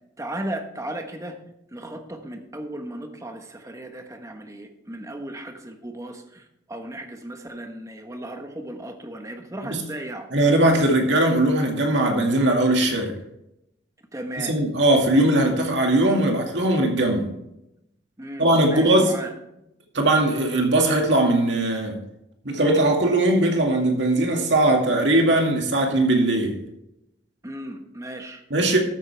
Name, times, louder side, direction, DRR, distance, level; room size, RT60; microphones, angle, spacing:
voice 1, 0.2-1.4 1.7-10.3 14.1-14.6 17.2-17.4 18.2-19.3 27.4-28.4, right 1 dB, 15° right, 5 dB, 1.1 m, -35 dB
voice 2, 10.3-13.1 14.4-17.3 18.4-19.1 19.9-22.0 22.4-26.6 28.5-28.8, right 1 dB, 70° right, 2 dB, 2.1 m, -20 dB
13.0 x 9.1 x 3.4 m, 0.84 s
head